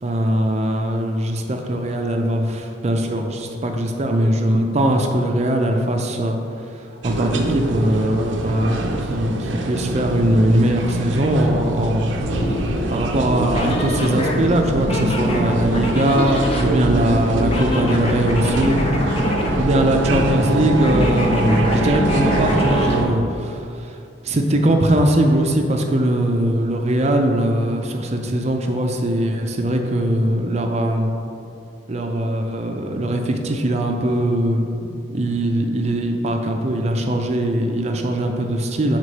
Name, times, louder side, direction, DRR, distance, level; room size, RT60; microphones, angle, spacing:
voice 1, 0.0-6.4 7.0-12.4 12.9-18.8 19.6-23.9 24.2-31.1 31.9-39.0, right 1 dB, 35° right, 3 dB, 0.5 m, -20 dB
sound 1, 7.0-23.1, right 2 dB, 85° right, 0.6 m, -24 dB
sound 2, 12.2-23.0, left 1 dB, 30° left, 0.6 m, -25 dB
4.9 x 3.7 x 5.3 m, 2.5 s
head